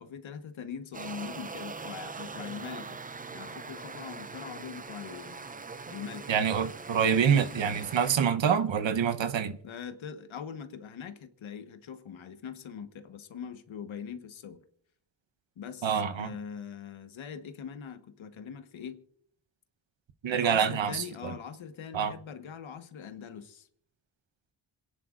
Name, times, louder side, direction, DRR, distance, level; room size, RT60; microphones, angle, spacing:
voice 1, 0.0-3.0 3.3-5.5 5.9-6.3 9.6-14.6 15.6-19.0 20.3-23.7, left 7 dB, 85° left, 1.3 m, -42 dB
sound 1, 0.9-8.2, right 4 dB, 20° right, 0.5 m, -42 dB
voice 2, 6.3-9.6 15.8-16.3 20.2-21.3 21.9-22.1, right 7 dB, 70° right, 1.0 m, -26 dB
27.5 x 10.0 x 2.5 m
cardioid pair, 75°, 46 cm